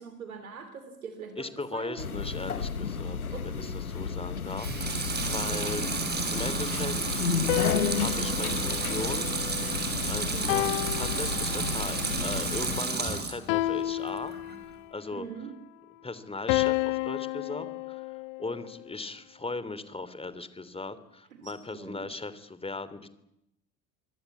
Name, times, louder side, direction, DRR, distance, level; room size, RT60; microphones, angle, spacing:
voice 1, 0.0-2.1 3.3-3.9 5.5-5.8 10.3-10.6 15.1-15.5 21.3-22.0, right 6 dB, 75° right, 9 dB, 3.0 m, -43 dB
voice 2, 1.4-3.2 3.4-5.9 6.3-7.2 7.9-9.3 10.0-14.6 14.9-15.3 16.0-18.0 18.4-23.1, left 3 dB, 15° left, 14 dB, 3.1 m, -38 dB
sound 1, 2.0-12.8, left 6 dB, 85° left, 1.2 m, -33 dB
Water tap faucet / Sink (filling or washing) / Liquid, 4.5-13.4 13.8-14.6, right 3 dB, 25° right, 7.1 m, -31 dB
sound 2, 7.5-9.9 10.5-11.9 13.5-14.9 16.5-18.8, left 18 dB, 55° left, 1.2 m, -31 dB
25.0 x 25.0 x 8.5 m, 0.83 s
figure-of-eight pair, 60°, 42 cm